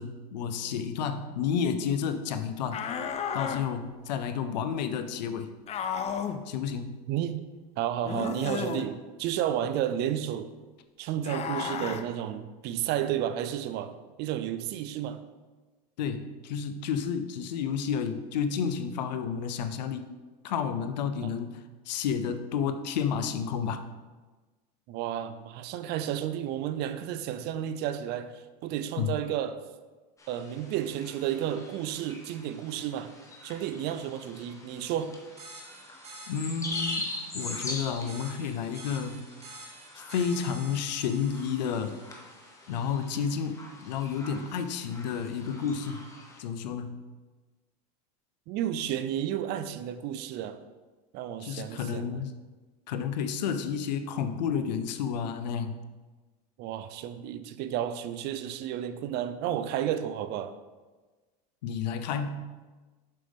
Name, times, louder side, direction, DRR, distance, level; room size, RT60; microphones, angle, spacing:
voice 1, 0.0-2.8 3.3-5.5 6.5-7.0 16.0-20.1 20.4-23.8 29.0-29.1 36.3-39.2 39.9-42.0 42.7-46.1 46.4-47.0 51.4-52.4 52.9-55.8 61.6-62.6, left 7 dB, 90° left, 0.7 m, -31 dB
sound 1, 2.7-3.6 5.7-6.4 8.0-8.9 11.2-12.0, left 7 dB, 30° left, 0.5 m, -33 dB
voice 2, 7.1-10.5 11.0-15.2 21.2-21.3 24.9-29.6 30.3-33.1 33.4-35.2 48.5-50.6 51.1-52.2 56.6-60.6, right 10 dB, 50° right, 0.6 m, -32 dB
sound 2, 30.2-46.4, left 2 dB, 15° left, 1.3 m, -43 dB
sound 3, 35.4-42.5, right 2 dB, 30° right, 2.1 m, -48 dB
7.5 x 6.5 x 3.5 m
supercardioid pair, 115°, 21 cm